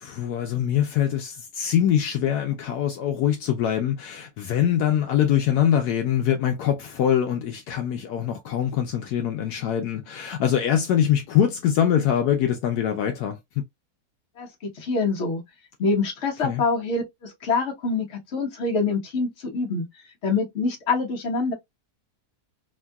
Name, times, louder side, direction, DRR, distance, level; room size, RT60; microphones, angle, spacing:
voice 1, 0.0-13.6 16.4-16.6, left 9 dB, 75° left, 1.1 m, -23 dB
voice 2, 14.8-15.4 15.8-19.9 20.2-21.5, left 4 dB, 50° left, 1.2 m, -25 dB
3.6 x 2.3 x 2.2 m
omnidirectional pair, 1.7 m